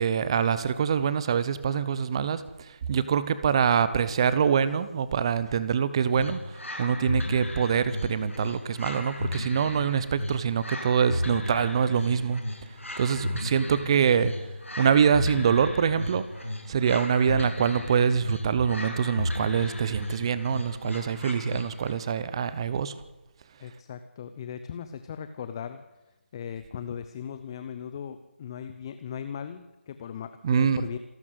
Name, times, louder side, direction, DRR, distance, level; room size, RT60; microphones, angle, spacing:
voice 1, 0.0-12.4 13.0-14.3 14.8-16.2 16.7-22.9 30.4-30.8, right 7 dB, 25° right, 14 dB, 0.9 m, -25 dB
sound 1, 6.1-22.0, left 1 dB, 90° left, 7.1 m, -34 dB
voice 2, 21.3-22.0 23.6-25.8 26.3-31.0, left 8 dB, 20° left, 10 dB, 0.7 m, -38 dB
27.0 x 12.0 x 8.1 m, 1.0 s
figure-of-eight pair, 160°, 7 cm